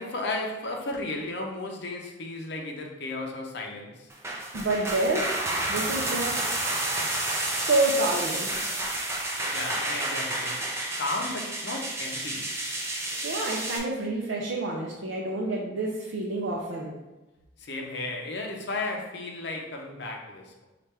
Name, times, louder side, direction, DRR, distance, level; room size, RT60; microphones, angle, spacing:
voice 1, 0.0-4.1 9.5-10.7 11.0-12.5 17.6-20.7, left 2 dB, 60° left, 1 dB, 0.6 m, -34 dB
sound 1, 4.1-13.8, right 2 dB, 15° right, 0.4 m, -30 dB
voice 2, 4.5-6.4 7.4-8.5 13.1-16.9, right 2 dB, 75° right, -3 dB, 0.5 m, -28 dB
3.3 x 2.5 x 4.3 m, 1.1 s
head